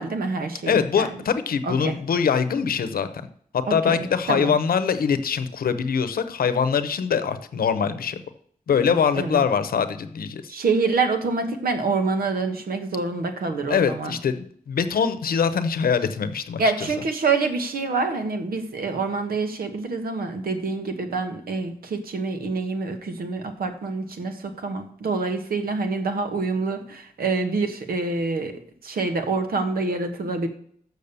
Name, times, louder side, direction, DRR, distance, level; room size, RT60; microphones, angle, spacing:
voice 1, 0.0-1.1 1.7-2.0 3.7-4.5 8.9-9.4 10.5-14.2 16.6-30.5, right 3 dB, 90° right, 7 dB, 1.3 m, -26 dB
voice 2, 0.7-3.1 3.5-8.2 8.7-10.5 13.7-16.9, left 6 dB, 85° left, 11 dB, 0.8 m, -23 dB
6.8 x 6.4 x 6.8 m, 0.63 s
wide cardioid pair, 160°, 15 cm